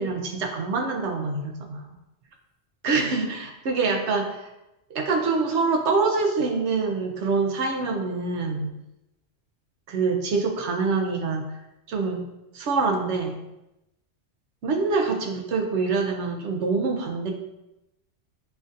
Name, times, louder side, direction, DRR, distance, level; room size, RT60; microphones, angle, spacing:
voice 1, 0.0-1.8 2.8-4.5 4.9-8.7 9.9-11.5 11.9-12.2 12.5-13.4 14.6-17.3, right 4 dB, 80° right, 2 dB, 1.0 m, -25 dB
7.3 x 2.5 x 2.6 m, 0.93 s
omnidirectional pair, 1.1 m